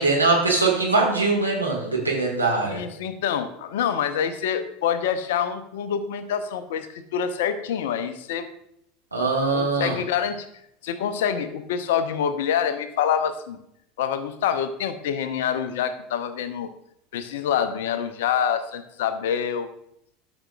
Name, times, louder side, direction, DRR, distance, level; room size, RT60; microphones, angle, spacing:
voice 1, 0.0-2.8 9.1-9.9, right 3 dB, 90° right, -3 dB, 1.6 m, -22 dB
voice 2, 2.6-8.5 9.5-10.5 10.8-13.6 14.0-16.7 17.1-19.7, left 8 dB, 65° left, 11 dB, 0.6 m, -26 dB
12.5 x 6.1 x 2.3 m, 0.76 s
figure-of-eight pair, 75°, 0 cm